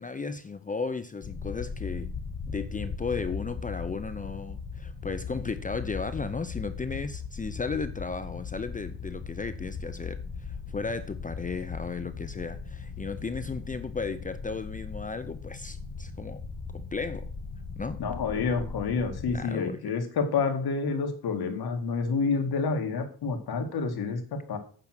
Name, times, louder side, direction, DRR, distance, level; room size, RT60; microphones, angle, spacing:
voice 1, 0.0-2.1 2.5-16.5 16.7-17.3 17.8-18.0 19.3-19.8, left 4 dB, 20° left, 0.6 m, -35 dB
sound 1, 1.2-19.4, left 5 dB, 40° left, 1.1 m, -38 dB
voice 2, 18.0-24.6, left 4 dB, 75° left, 2.2 m, -29 dB
9.0 x 6.1 x 6.0 m
wide cardioid pair, 135°, 38 cm